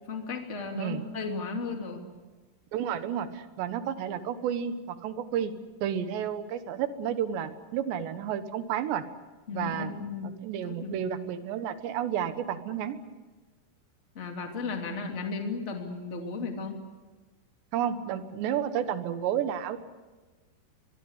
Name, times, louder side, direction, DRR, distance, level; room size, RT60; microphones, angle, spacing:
voice 1, 0.0-2.1 9.5-11.0 14.1-16.8, left 4 dB, 20° left, 3 dB, 2.2 m, -35 dB
voice 2, 2.7-5.5 5.8-9.0 9.5-9.9 10.2-13.0 17.7-19.8, right 9 dB, 90° right, 10 dB, 3.5 m, -31 dB
23.5 x 23.5 x 8.1 m, 1.2 s
omnidirectional pair, 4.9 m